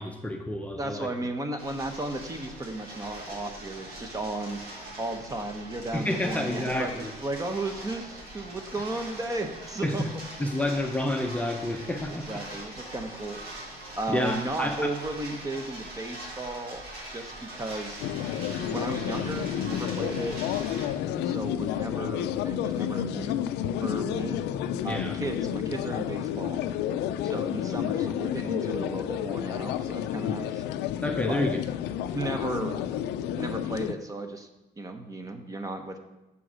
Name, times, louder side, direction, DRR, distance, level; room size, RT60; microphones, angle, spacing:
voice 1, 0.0-1.1 5.9-7.1 9.8-10.0 10.4-12.4 14.1-14.9 24.9-25.2 31.0-31.6, left 1 dB, 10° left, 2 dB, 0.6 m, -29 dB
voice 2, 0.8-4.6 5.0-10.0 12.1-13.4 14.0-16.8 17.1-18.0 18.7-20.4 21.2-23.4 23.8-24.4 24.8-26.6 27.2-30.6 31.3-31.5 32.1-32.8 33.4-34.5 34.8-36.0, right 2 dB, 20° right, 6 dB, 0.9 m, -34 dB
coin spiral, 1.6-20.9, right 1 dB, 65° right, 2.7 m, -42 dB
sound 1, 18.0-33.9, left 10 dB, 85° left, 0.4 m, -30 dB
7.0 x 4.7 x 6.2 m, 1.0 s
cardioid pair, 110°, 17 cm